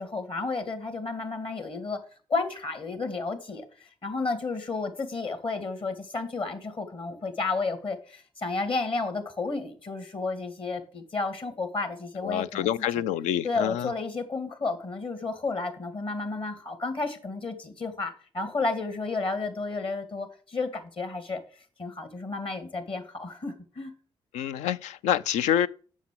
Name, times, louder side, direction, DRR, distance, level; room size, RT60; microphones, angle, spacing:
voice 1, 0.0-2.0 2.3-12.7 12.9-13.0 13.4-21.4 21.8-23.9, left 3 dB, 45° left, 2.3 m, -32 dB
voice 2, 12.2-13.9 24.3-25.7, left 10 dB, 70° left, 0.4 m, -27 dB
7.2 x 6.1 x 7.5 m
hypercardioid pair, 40°, 12 cm